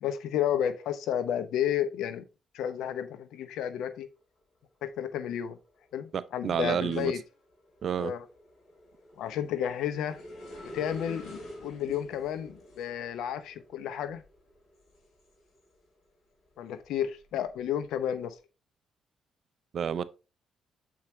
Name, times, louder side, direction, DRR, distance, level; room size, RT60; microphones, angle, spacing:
voice 1, 0.0-2.2 2.5-4.1 4.8-5.6 5.9-7.2 8.0-8.2 9.2-10.2 10.6-14.2 16.6-18.4, left 10 dB, 85° left, 0.7 m, -32 dB
sound 1, 4.0-4.4 4.8-16.0 16.5-18.2, equal, 60° left, 3.3 m, -49 dB
voice 2, 6.1-7.1 7.8-8.1 19.7-20.0, right 7 dB, 55° right, 0.5 m, -30 dB
7.2 x 4.7 x 3.1 m
cardioid pair, 90°, 0 cm